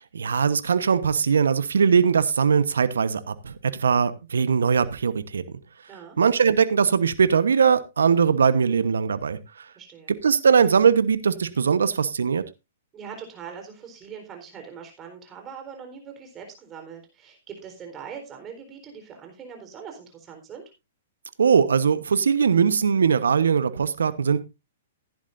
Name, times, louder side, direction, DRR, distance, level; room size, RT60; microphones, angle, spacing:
voice 1, 0.1-5.4 6.2-9.4 10.2-12.4 21.4-24.4, right 6 dB, 80° right, 1.0 m, -20 dB
voice 2, 9.8-10.1 12.9-20.6, right 7 dB, 25° right, 4.0 m, -41 dB
15.5 x 10.5 x 2.6 m
hypercardioid pair, 125°, 0 cm